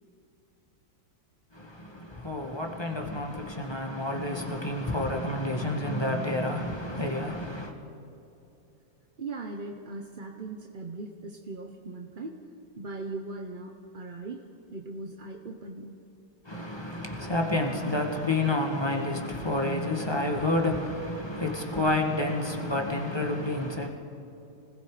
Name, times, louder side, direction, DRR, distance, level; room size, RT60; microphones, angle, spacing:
voice 1, 1.5-7.7 16.4-23.9, left 1 dB, 15° left, 1.8 m, -29 dB
voice 2, 9.2-12.4 12.8-14.4 14.7-16.0, right 3 dB, 35° right, 0.9 m, -39 dB
29.5 x 20.5 x 5.1 m
omnidirectional pair, 2.0 m